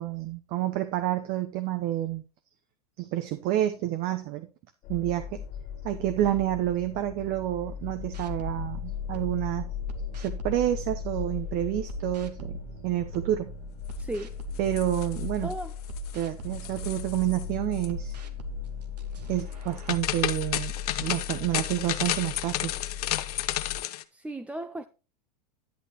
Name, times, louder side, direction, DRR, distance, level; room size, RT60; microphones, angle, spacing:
voice 1, 0.0-2.2 3.0-4.5 4.9-5.4 5.8-9.7 10.1-13.5 14.6-15.5 16.1-18.2 19.3-20.7 21.0-22.7, right 13 dB, 50° right, 0.9 m, -29 dB
sound 1, 4.8-23.8, left 8 dB, 40° left, 2.0 m, -38 dB
sound 2, 8.1-11.4 11.9-15.4 15.9-20.3, right 2 dB, 85° right, 1.5 m, -41 dB
voice 2, 14.0-14.4 15.4-15.7 24.1-24.9, right 1 dB, 5° right, 0.5 m, -35 dB
sound 3, 14.6-15.5 15.8-16.3 16.5-17.4 17.7-17.9 19.5-24.0, left 14 dB, 70° left, 0.8 m, -32 dB
10.5 x 8.4 x 3.0 m
hypercardioid pair, 100°, 20 cm